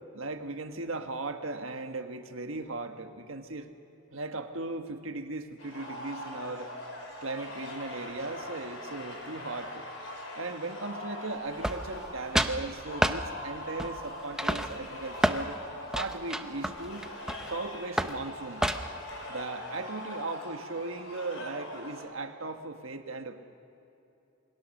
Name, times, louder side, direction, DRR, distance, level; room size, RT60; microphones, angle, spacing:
voice 1, 0.1-3.7 4.1-6.7 7.2-9.9 10.3-15.6 15.9-17.1 17.5-18.7 19.3-23.4, right 3 dB, 80° right, 6 dB, 1.5 m, -37 dB
sound 1, 5.6-22.0, left 1 dB, 75° left, 4.7 m, -42 dB
sound 2, 11.6-12.1 12.4-12.6 13.0-13.2 13.8-14.1 14.4-15.4 15.9-17.5 18.0-18.2 18.6-19.0, right 1 dB, 5° right, 0.6 m, -29 dB
28.0 x 22.0 x 6.6 m, 2.8 s
head